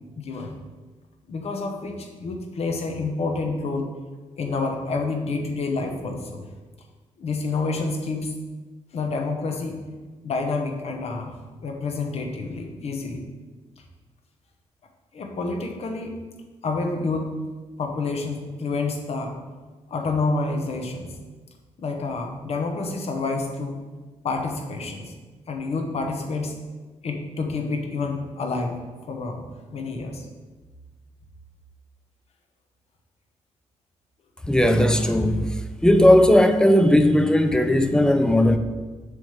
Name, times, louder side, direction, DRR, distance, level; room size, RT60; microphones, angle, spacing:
voice 1, 0.2-0.6 1.3-3.9 4.4-6.5 7.2-8.3 8.9-9.8 10.2-11.4 11.6-13.2 15.1-16.2 16.6-17.4 17.8-19.3 19.9-21.2 21.8-23.8 24.2-25.1 25.5-26.6 27.0-28.8 29.1-29.4 29.7-30.3 34.9-35.1, left 3 dB, 60° left, 1.1 m, -28 dB
voice 2, 34.5-35.5 35.8-38.6, left 1 dB, 5° left, 0.5 m, -17 dB
6.9 x 3.4 x 5.7 m
cardioid pair, 85°, 12 cm